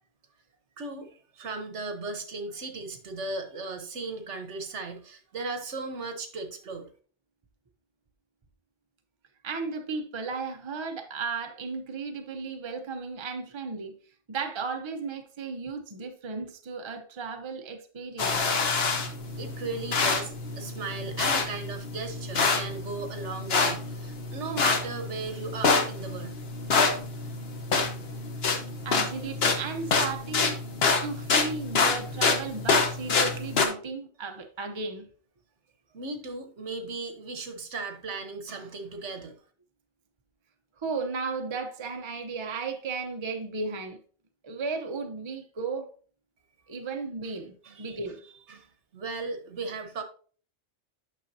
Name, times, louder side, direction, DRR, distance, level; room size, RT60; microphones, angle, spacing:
voice 1, 0.8-6.9 19.4-26.4 35.9-39.4 47.6-48.0 48.5-50.0, right 3 dB, 75° right, 1.4 m, -36 dB
voice 2, 9.4-14.0 14.3-18.6 28.8-30.6 31.0-35.1 40.8-44.0 44.4-45.9 46.7-48.2, right 4 dB, 30° right, 0.7 m, -35 dB
sound 1, 18.2-33.7, left 4 dB, 60° left, 1.2 m, -27 dB
9.1 x 6.0 x 2.7 m
omnidirectional pair, 1.2 m